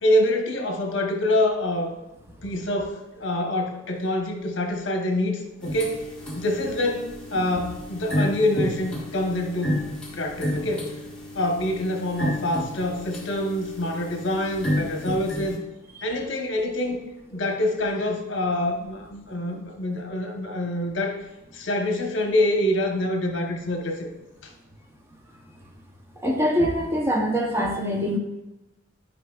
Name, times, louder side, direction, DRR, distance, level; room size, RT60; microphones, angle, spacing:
voice 1, 0.0-2.0 2.4-6.0 6.4-9.8 10.1-11.0 11.3-15.6 16.0-17.0 17.3-21.2 21.5-24.1 24.4-24.5, left 1 dB, 65° left, 3 dB, 1.0 m, -26 dB
sound 1, 5.6-15.6, left 1 dB, 5° left, 1.5 m, -31 dB
voice 2, 26.2-28.2, equal, 15° right, 0 dB, 0.7 m, -23 dB
10.0 x 5.3 x 2.4 m, 1.0 s
head